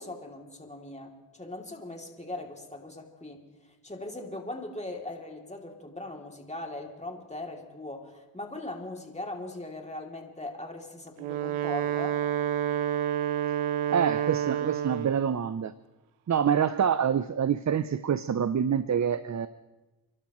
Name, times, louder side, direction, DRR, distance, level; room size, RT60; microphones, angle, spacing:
voice 1, 0.0-3.4 3.8-12.2, left 2 dB, 15° left, 2 dB, 2.9 m, -40 dB
Wind instrument woodwind instrument, 11.1-15.3, right 10 dB, 90° right, 0.8 m, -29 dB
voice 2, 13.9-15.7 16.3-19.5, right 8 dB, 35° right, 14 dB, 0.7 m, -26 dB
30.0 x 12.0 x 3.1 m, 1.1 s
supercardioid pair, 45°, 48 cm